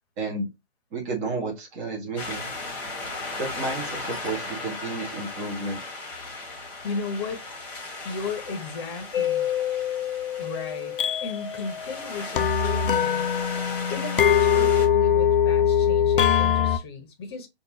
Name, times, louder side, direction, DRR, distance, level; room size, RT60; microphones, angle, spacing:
voice 1, 0.2-0.5 0.9-2.5 3.4-5.8, right 3 dB, 15° right, 0.9 m, -31 dB
sound 1, 2.2-14.9, left 3 dB, 5° left, 1.4 m, -37 dB
voice 2, 6.8-7.5 8.0-9.5 10.4-13.3 13.9-17.5, left 4 dB, 25° left, 1.0 m, -35 dB
sound 2, 9.1-16.8, left 8 dB, 55° left, 0.5 m, -23 dB
6.7 x 2.6 x 3.0 m
figure-of-eight pair, 135°, 32 cm